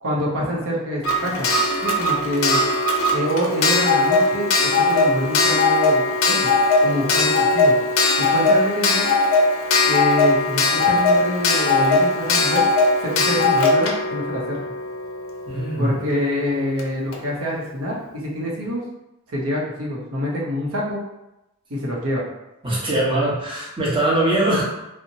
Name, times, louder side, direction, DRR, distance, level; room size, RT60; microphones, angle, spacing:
voice 1, 0.0-1.5 1.8-2.6 3.1-6.5 6.8-7.7 8.2-9.1 9.9-12.6 13.0-14.6 15.8-18.8 19.3-21.0 21.7-22.2, equal, 85° right, -3 dB, 0.7 m, -26 dB
Clock, 1.0-15.6 16.8-16.9 17.1-17.2, left 2 dB, 70° left, 0.4 m, -19 dB
voice 2, 15.5-15.9 22.6-24.6, right 1 dB, 25° right, -6 dB, 0.8 m, -21 dB
2.8 x 2.0 x 2.6 m, 0.92 s
head